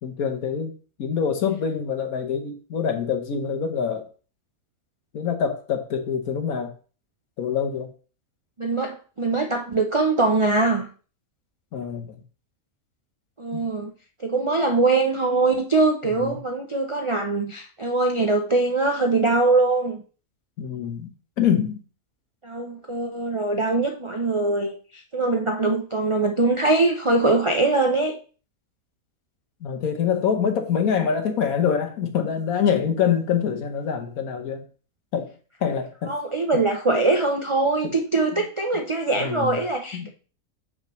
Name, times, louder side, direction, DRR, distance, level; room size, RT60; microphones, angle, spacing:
voice 1, 0.0-0.7 1.0-4.1 5.1-6.7 7.4-7.9 11.7-12.2 13.5-13.6 16.0-16.4 20.6-21.1 21.4-21.8 29.6-34.6 35.1-35.3 35.6-36.2 37.8-37.9 39.2-39.6 39.9-40.1, left 7 dB, 70° left, 1.4 m, -25 dB
voice 2, 8.6-10.9 13.4-13.9 14.2-20.0 22.4-28.1 36.1-40.1, right 3 dB, 50° right, 0.3 m, -22 dB
6.6 x 5.7 x 3.0 m
omnidirectional pair, 1.6 m